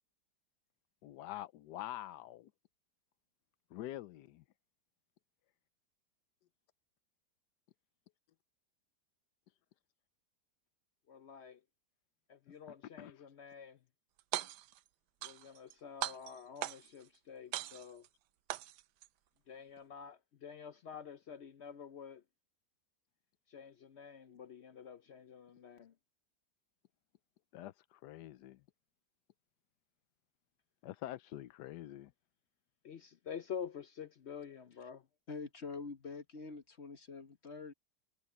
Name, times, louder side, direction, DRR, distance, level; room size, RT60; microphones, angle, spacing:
voice 1, 1.0-2.5 3.7-4.4 13.0-13.1 27.5-28.6 30.8-32.1, left 13 dB, 85° left, 1.3 m, -46 dB
voice 2, 11.1-11.6 12.3-13.8 15.2-18.1 19.5-22.2 23.5-25.9 32.8-35.1, left 7 dB, 60° left, 0.7 m, -48 dB
sound 1, 14.2-14.8 15.2-15.7 16.0-17.0 17.5-18.1 18.5-19.1, right 14 dB, 85° right, 1.2 m, -40 dB
voice 3, 35.3-37.7, left 4 dB, 45° left, 1.4 m, -45 dB
omnidirectional pair, 1.8 m